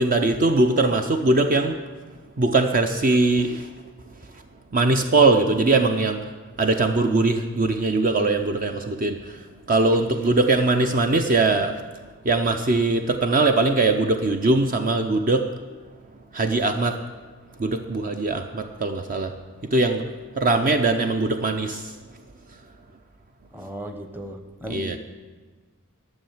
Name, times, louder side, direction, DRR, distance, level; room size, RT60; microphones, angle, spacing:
voice 1, 0.0-1.8 2.4-3.7 4.7-6.3 6.6-9.4 9.7-11.8 12.2-15.5 16.3-17.1 17.6-19.4 19.6-20.1 20.4-21.9 24.7-25.0, right 2 dB, 40° right, 6 dB, 0.5 m, -21 dB
voice 2, 23.5-24.9, equal, 10° right, 6 dB, 0.9 m, -36 dB
12.0 x 6.9 x 7.2 m, 1.4 s
head